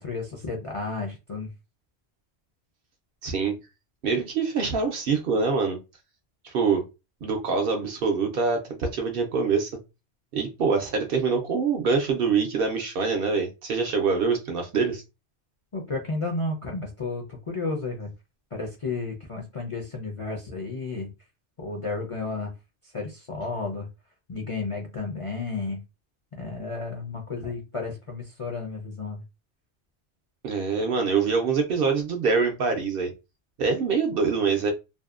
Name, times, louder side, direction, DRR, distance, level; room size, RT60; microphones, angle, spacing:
voice 1, 0.0-1.5 15.7-18.1 18.5-21.1 21.6-22.5 22.9-23.9 24.3-25.8 26.3-29.2, left 3 dB, 45° left, 0.4 m, -32 dB
voice 2, 3.2-3.5 4.0-5.8 6.4-6.8 7.2-9.7 10.3-15.0 30.4-33.1 33.6-34.7, right 5 dB, 60° right, 0.7 m, -25 dB
2.6 x 2.1 x 2.3 m
omnidirectional pair, 1.2 m